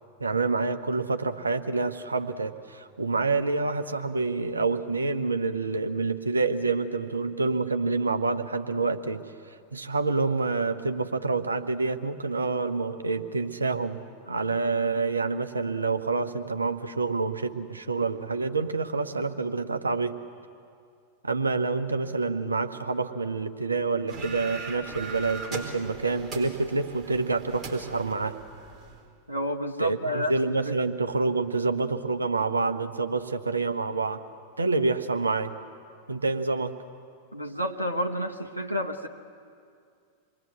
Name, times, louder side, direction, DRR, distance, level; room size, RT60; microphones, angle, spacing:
voice 1, 0.2-9.2 9.7-20.2 21.2-28.4 29.8-34.2 34.6-35.6 36.1-36.7, right 3 dB, 80° right, 8 dB, 1.2 m, -27 dB
sound 1, 24.1-29.0, right 3 dB, 25° right, 4.2 m, -40 dB
voice 2, 29.3-30.4 30.6-30.7 37.3-39.1, equal, 90° left, 2 dB, 1.2 m, -30 dB
27.0 x 22.0 x 8.1 m, 2.3 s
figure-of-eight pair, 90°, 0 cm